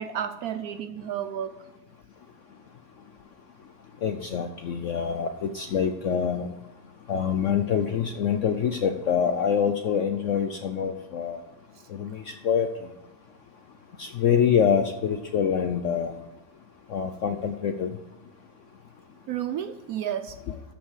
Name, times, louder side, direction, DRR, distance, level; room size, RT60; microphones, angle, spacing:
voice 1, 0.0-1.5 19.3-20.4, right 9 dB, 70° right, 11 dB, 0.9 m, -31 dB
voice 2, 4.0-6.5 7.1-11.4 11.9-12.7 14.0-16.2 16.9-17.9 20.5-20.6, left 7 dB, 70° left, 7 dB, 0.7 m, -25 dB
13.0 x 6.1 x 4.8 m, 1.0 s
omnidirectional pair, 1.9 m